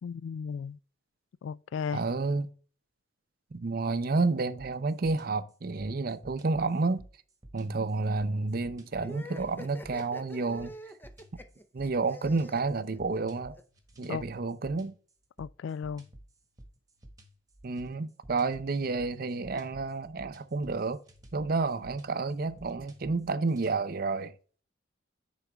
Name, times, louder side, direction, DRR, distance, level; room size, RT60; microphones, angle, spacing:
voice 1, 0.0-0.8 1.4-2.0 14.1-14.3 15.4-16.1, left 6 dB, 75° left, 0.3 m, -35 dB
voice 2, 1.9-2.5 3.5-7.1 7.5-10.7 11.7-13.6 14.0-15.0 17.6-21.0 21.3-24.3, right 3 dB, 50° right, 0.5 m, -30 dB
sound 1, 4.6-23.8, right 1 dB, 20° right, 1.4 m, -53 dB
sound 2, 9.0-13.6, equal, 10° left, 0.5 m, -46 dB
9.6 x 4.1 x 3.4 m
head